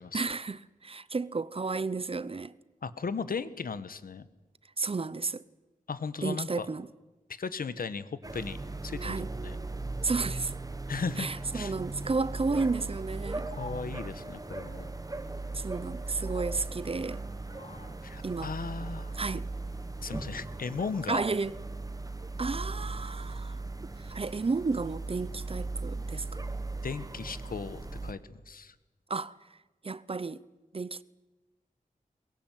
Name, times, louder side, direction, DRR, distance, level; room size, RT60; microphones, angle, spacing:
voice 1, 0.1-2.5 4.8-5.4 6.2-6.9 9.0-9.3 10.0-10.5 11.2-13.5 15.5-17.2 18.2-18.5 19.1-19.5 21.1-21.6 22.4-23.6 24.0-26.4 29.1-29.6 29.8-30.4 30.7-31.0, right 4 dB, 40° right, 0.8 m, -32 dB
voice 2, 2.8-4.3 5.9-6.7 7.4-8.6 8.8-9.6 10.9-11.3 11.5-11.7 13.6-14.9 18.0-19.1 20.0-21.2 26.8-28.7, left 5 dB, 85° left, 1.4 m, -36 dB
sound 1, 8.2-28.1, right 3 dB, 25° right, 1.7 m, -38 dB
sound 2, 13.1-20.0, left 3 dB, 50° left, 2.4 m, -54 dB
22.5 x 21.5 x 9.3 m
wide cardioid pair, 105°, 15 cm